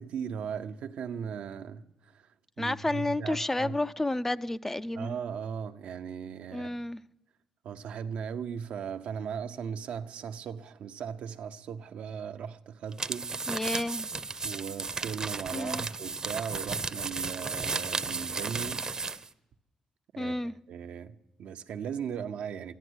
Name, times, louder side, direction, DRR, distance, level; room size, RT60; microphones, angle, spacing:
voice 1, 0.0-2.3 2.6-3.8 4.9-6.7 7.6-13.3 14.4-18.9 20.1-20.4 20.7-22.8, right 7 dB, 80° right, 0.8 m, -38 dB
voice 2, 2.6-5.2 6.5-7.0 13.5-14.1 15.5-15.8 20.2-20.5, left 2 dB, 15° left, 0.5 m, -31 dB
sound 1, 12.9-19.3, right 4 dB, 35° right, 0.7 m, -34 dB
14.5 x 11.5 x 8.0 m
cardioid pair, 90°, 2 cm